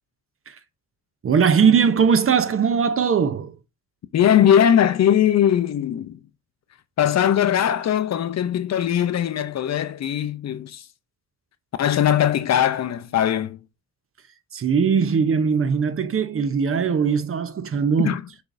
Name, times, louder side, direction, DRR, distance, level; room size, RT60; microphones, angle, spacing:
voice 1, 1.2-3.5 14.5-18.1, right 6 dB, 40° right, 0.6 m, -20 dB
voice 2, 4.1-6.2 7.0-10.9 11.8-13.6 18.0-18.2, left 10 dB, 50° left, 0.5 m, -20 dB
6.1 x 3.4 x 2.5 m
cardioid pair, 115°, 34 cm